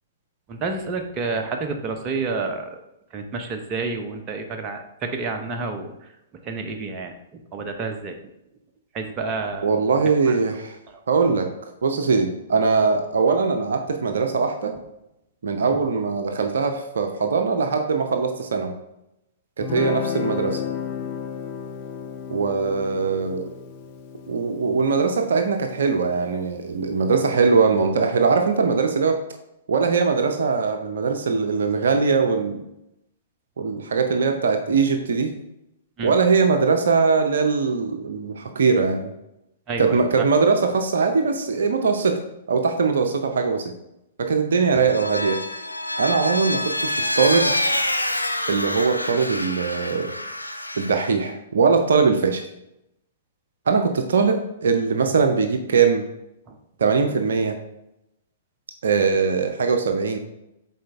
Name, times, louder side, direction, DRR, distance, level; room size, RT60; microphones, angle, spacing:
voice 1, 0.5-2.8 3.1-6.1 6.4-8.2 8.9-9.7 10.3-10.4 15.7-15.8 36.0-36.1 39.7-40.3 44.7-44.9 56.5-56.6, right 4 dB, 25° right, 4 dB, 0.8 m, -29 dB
voice 2, 9.6-10.8 11.1-11.5 11.8-14.7 15.4-18.7 19.6-20.6 22.3-23.5 24.3-29.2 29.7-32.6 33.6-35.3 36.0-39.1 39.8-42.2 42.5-43.7 44.2-45.4 46.0-47.5 48.5-50.1 50.8-52.4 53.7-56.0 56.8-57.5 58.8-60.2, right 5 dB, 65° right, 5 dB, 0.6 m, -21 dB
Guitar, 19.6-26.7, left 7 dB, 35° left, 0.6 m, -33 dB
Vehicle, 44.7-51.1, left 1 dB, 90° left, 0.5 m, -27 dB
7.6 x 4.2 x 3.5 m, 0.86 s
figure-of-eight pair, 110°, 0 cm